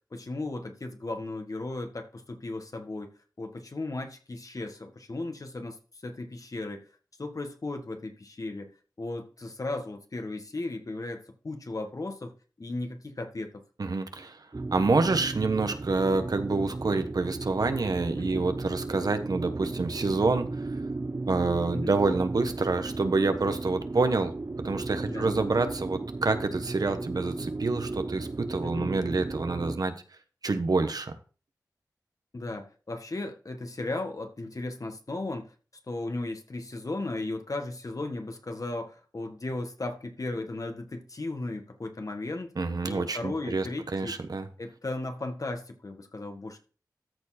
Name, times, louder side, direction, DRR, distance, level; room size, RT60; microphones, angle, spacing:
voice 1, 0.1-3.1 3.4-5.8 6.0-6.9 7.2-12.3 12.6-13.6 18.2-18.5 21.7-22.0 25.1-25.5 28.6-28.9 32.3-35.5 35.9-42.5 42.8-44.2 44.6-46.6, left 2 dB, 55° left, 1.7 m, -36 dB
voice 2, 13.8-14.4 14.7-20.7 21.3-24.3 24.6-29.9 30.4-31.1 42.6-43.7 43.9-44.5, right 3 dB, 65° right, 1.1 m, -27 dB
sound 1, 14.5-29.8, right 3 dB, 40° right, 0.5 m, -35 dB
13.5 x 4.6 x 4.3 m
cardioid pair, 40°, 7 cm